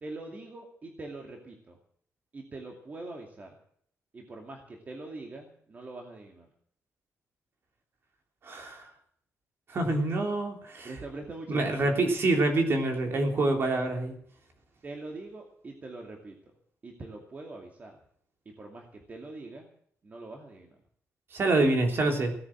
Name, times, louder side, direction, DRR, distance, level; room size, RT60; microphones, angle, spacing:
voice 1, 0.0-1.8 2.3-3.5 4.1-6.5 10.8-12.0 14.8-16.4 16.8-18.0 18.5-19.7 20.0-20.8, right 2 dB, 30° right, 1 dB, 2.5 m, -43 dB
voice 2, 8.4-8.9 9.7-10.9 11.5-14.2 21.3-22.3, right 2 dB, 45° right, 3 dB, 3.4 m, -26 dB
17.5 x 9.7 x 7.5 m, 0.63 s
wide cardioid pair, 155°, 5 cm